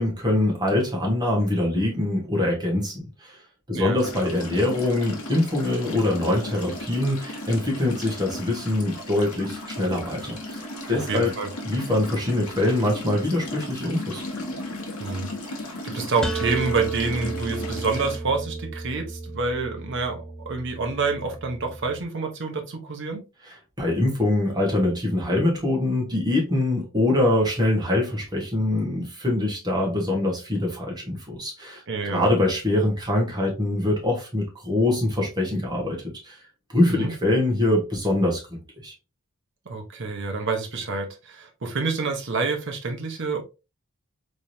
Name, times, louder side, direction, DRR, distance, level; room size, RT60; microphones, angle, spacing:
voice 1, 0.0-3.4 3.7-11.3 11.6-14.2 23.4-36.4 36.7-38.9, left 1 dB, 20° right, 1.3 m, -24 dB
sound 1, 4.0-18.2, left 1 dB, 85° left, 1.0 m, -36 dB
voice 2, 11.1-11.5 15.0-15.3 15.8-23.2 31.9-32.2 36.9-37.1 39.7-43.4, right 3 dB, 55° right, 0.8 m, -28 dB
sound 2, 16.2-22.0, right 4 dB, 5° left, 0.4 m, -33 dB
3.5 x 3.1 x 2.7 m
head